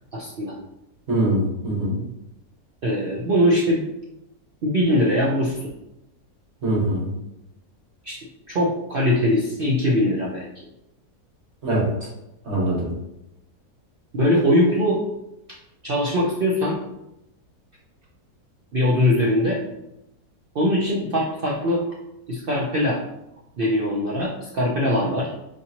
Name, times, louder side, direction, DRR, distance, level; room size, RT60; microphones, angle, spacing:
voice 1, 0.1-0.6 2.8-3.8 4.6-5.7 8.0-8.2 8.5-10.5 14.1-15.0 15.8-16.8 18.7-19.6 20.5-21.9 22.3-23.0 23.6-25.3, left 1 dB, 85° right, -3 dB, 0.4 m, -21 dB
voice 2, 1.1-2.0 6.6-7.1 11.6-11.9 12.4-12.9, right 1 dB, 45° right, -4 dB, 1.3 m, -22 dB
4.9 x 2.8 x 2.8 m, 0.88 s
omnidirectional pair, 1.7 m